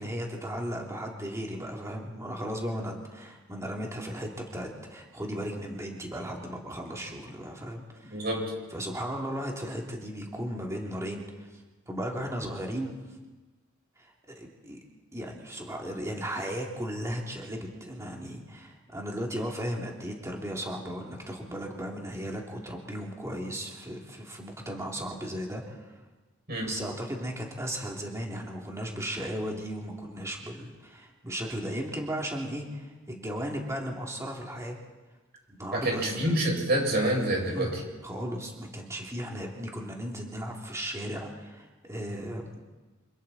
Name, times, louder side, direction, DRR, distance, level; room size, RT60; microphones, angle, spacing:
voice 1, 0.0-8.3 8.7-11.6 11.9-13.0 14.0-14.8 15.1-26.0 26.6-34.8 35.5-36.4 37.4-42.6, equal, 15° right, -1 dB, 3.1 m, -36 dB
voice 2, 8.1-8.4 26.5-26.7 35.7-37.7, right 1 dB, 50° right, 0 dB, 7.2 m, -27 dB
27.5 x 27.0 x 4.4 m, 1.2 s
head